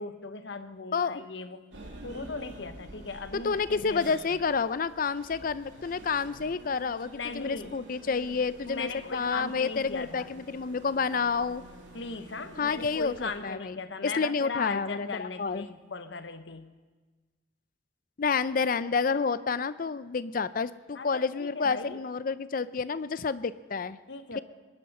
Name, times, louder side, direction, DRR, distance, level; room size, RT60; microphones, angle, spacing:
voice 1, 0.0-1.7 2.0-4.4 7.2-7.8 8.7-10.3 11.9-16.7 20.9-22.0 24.1-24.4, left 3 dB, 75° left, 10 dB, 1.0 m, -38 dB
voice 2, 0.9-1.2 3.3-11.6 12.6-13.8 14.0-15.7 18.2-24.0, left 5 dB, 50° left, 16 dB, 0.5 m, -29 dB
sound 1, 1.7-13.4, right 1 dB, 90° right, 2.8 m, -49 dB
22.5 x 10.5 x 5.5 m, 1.3 s
head